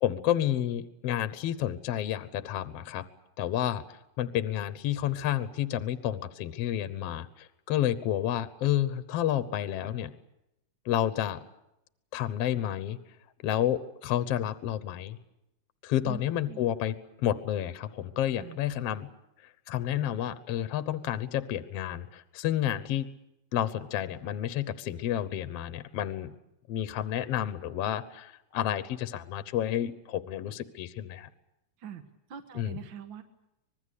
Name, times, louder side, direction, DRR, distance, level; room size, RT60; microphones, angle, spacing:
voice 1, 0.0-3.0 3.4-3.8 4.2-10.1 10.9-11.4 12.1-13.0 13.4-15.2 15.8-16.9 17.2-19.1 19.7-23.1 23.5-26.3 26.7-31.3 32.6-32.8, left 11 dB, 65° left, 13 dB, 1.9 m, -30 dB
voice 2, 16.0-16.6 18.4-18.6 31.8-32.0 32.3-33.2, right 8 dB, 50° right, 6 dB, 1.7 m, -42 dB
25.5 x 20.5 x 8.4 m, 0.86 s
omnidirectional pair, 3.3 m